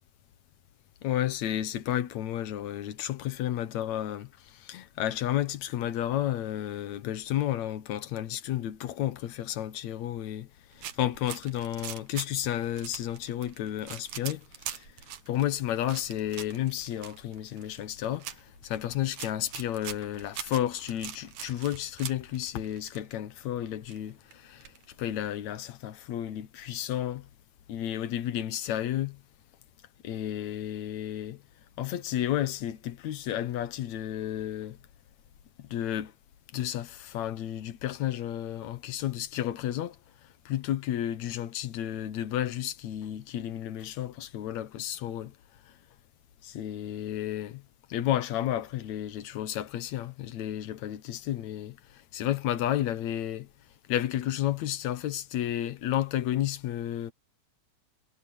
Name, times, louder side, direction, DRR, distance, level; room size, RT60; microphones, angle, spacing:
voice 1, 1.0-10.5 10.8-14.4 14.7-14.9 15.3-24.7 25.0-27.3 27.7-29.2 30.0-31.4 31.8-34.8 35.6-36.1 36.5-40.0 40.5-45.3 46.4-47.6 47.9-53.5 53.9-57.1, left 12 dB, 70° left, 2.4 m, -32 dB
sound 1, 10.7-23.1 23.4-23.5 23.7-25.0, right 10 dB, 70° right, 2.7 m, -43 dB
omnidirectional pair, 3.5 m